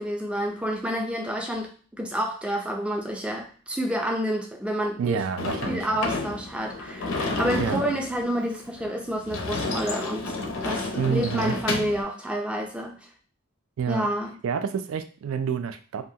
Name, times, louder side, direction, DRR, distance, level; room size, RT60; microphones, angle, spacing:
voice 1, 0.0-1.7 2.0-5.2 5.7-10.3 10.6-13.0 13.9-14.3, equal, 5° right, 1 dB, 0.4 m, -29 dB
voice 2, 5.0-6.0 7.6-7.8 11.0-11.6 13.8-14.1 14.4-16.1, right 6 dB, 70° right, 9 dB, 0.3 m, -28 dB
Sliding door / Slam, 5.4-12.0, left 3 dB, 65° left, 0.5 m, -31 dB
2.8 x 2.3 x 2.7 m, 0.41 s
head